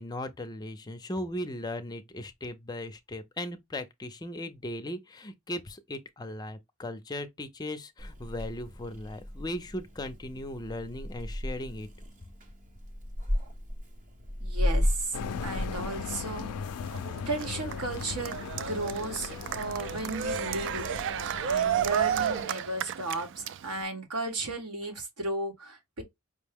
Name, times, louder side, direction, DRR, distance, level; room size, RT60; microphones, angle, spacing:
voice 1, 0.0-11.9, left 1 dB, 20° left, 0.5 m, -37 dB
Purr / Meow, 8.0-16.8, equal, 35° right, 0.9 m, -34 dB
voice 2, 14.4-15.2 15.4-16.5 17.3-26.0, right 2 dB, 85° right, 1.4 m, -35 dB
sound 1, 15.1-22.4, left 6 dB, 80° left, 0.4 m, -38 dB
Cheering, 16.8-23.8, right 9 dB, 55° right, 0.3 m, -32 dB
5.2 x 2.1 x 3.5 m
head